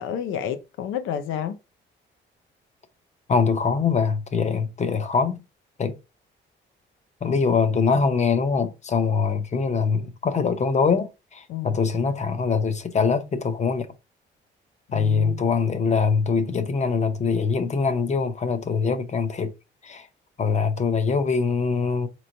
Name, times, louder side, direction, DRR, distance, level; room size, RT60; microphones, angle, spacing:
voice 1, 0.0-1.6 11.5-11.8 14.9-15.5, left 9 dB, 90° left, 0.6 m, -30 dB
voice 2, 3.3-5.4 5.8-6.0 7.2-13.9 14.9-19.5 19.8-20.1 20.4-22.1, left 5 dB, 35° left, 0.7 m, -23 dB
4.2 x 3.0 x 2.6 m
cardioid pair, 90°, 20 cm